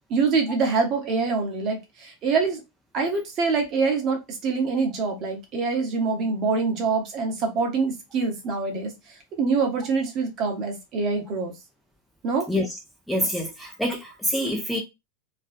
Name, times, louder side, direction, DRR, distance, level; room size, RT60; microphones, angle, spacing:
voice 1, 0.1-2.6 2.9-8.9 9.4-11.5 12.2-12.4, right 4 dB, 35° right, 0.8 m, -25 dB
voice 2, 12.5-12.8 13.1-14.8, left 1 dB, ahead, 0.5 m, -26 dB
2.4 x 2.2 x 2.5 m
figure-of-eight pair, 90°, 0 cm